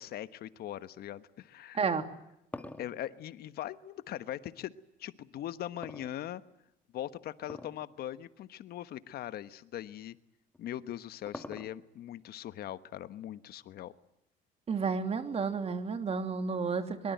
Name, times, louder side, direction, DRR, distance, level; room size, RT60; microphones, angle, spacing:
voice 1, 0.0-1.8 2.8-4.7 5.0-6.4 6.9-10.2 10.6-13.9, left 12 dB, 65° left, 13 dB, 1.2 m, -41 dB
voice 2, 1.7-2.0 14.7-17.1, right 5 dB, 35° right, 8 dB, 3.0 m, -31 dB
sound 1, 2.0-4.4 5.8-6.7 7.4-7.9 8.2-8.3 9.1-9.2 10.5-12.0, left 2 dB, 10° left, 1.9 m, -45 dB
23.5 x 23.5 x 9.4 m, 0.82 s
cardioid pair, 110°, 17 cm